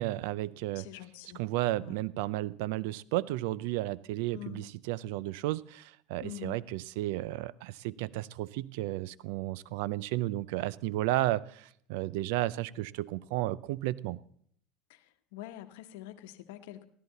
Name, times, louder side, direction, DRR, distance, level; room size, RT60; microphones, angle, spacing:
voice 1, 0.0-0.9 1.3-14.2, right 16 dB, 80° right, 21 dB, 0.4 m, -33 dB
voice 2, 0.7-1.4 1.8-2.0 4.3-4.7 6.2-6.6 15.3-16.8, left 14 dB, 85° left, 10 dB, 1.0 m, -44 dB
14.0 x 13.0 x 4.0 m, 0.65 s
supercardioid pair, 130°, 0 cm